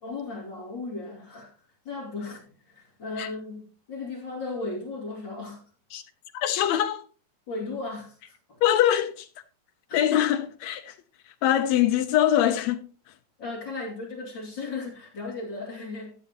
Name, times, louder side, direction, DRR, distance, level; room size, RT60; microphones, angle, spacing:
voice 1, 0.0-1.5 1.8-5.7 7.5-8.2 8.5-8.6 9.9-10.2 13.4-16.1, left 3 dB, 40° left, 3.0 m, -36 dB
voice 2, 6.3-7.0 8.6-9.3 9.9-11.0 11.4-12.9, left 11 dB, 75° left, 1.7 m, -23 dB
14.5 x 8.1 x 2.9 m
omnidirectional pair, 3.5 m